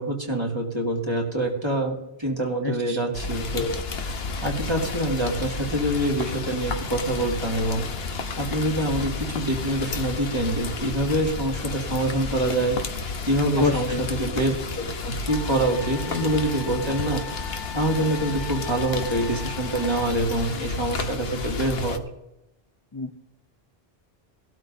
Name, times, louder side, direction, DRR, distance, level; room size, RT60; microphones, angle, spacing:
voice 1, 0.0-3.8 4.4-7.9 8.4-12.8 13.2-22.0, right 1 dB, 25° right, -1 dB, 2.2 m, -26 dB
voice 2, 2.6-3.0 13.6-14.0 22.9-23.1, left 4 dB, 25° left, 3 dB, 0.7 m, -26 dB
Rain, 3.1-22.0, left 4 dB, 75° left, 1.2 m, -32 dB
Wind instrument woodwind instrument, 15.3-20.2, left 7 dB, 55° left, 1.0 m, -40 dB
18.5 x 12.5 x 2.7 m, 0.87 s
omnidirectional pair, 1.0 m